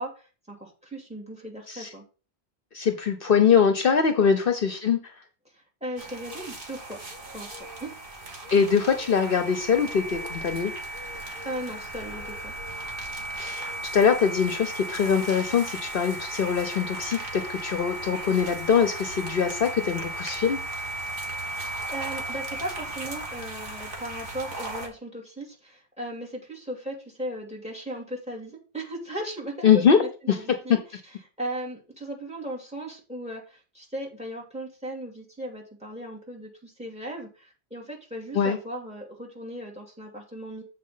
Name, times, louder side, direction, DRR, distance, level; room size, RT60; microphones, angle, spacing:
voice 1, 0.0-2.0 4.2-4.3 5.5-7.0 7.3-7.9 11.1-12.5 21.9-31.0 31.4-40.6, right 1 dB, 5° right, 0 dB, 2.6 m, -37 dB
voice 2, 2.7-5.1 8.5-10.7 13.4-20.6 29.6-30.0 30.3-30.4 38.3-38.6, left 6 dB, 60° left, 6 dB, 1.0 m, -23 dB
sound 1, 6.0-24.9, right 2 dB, 55° right, 1.7 m, -36 dB
7.4 x 4.5 x 5.6 m, 0.34 s
omnidirectional pair, 1.1 m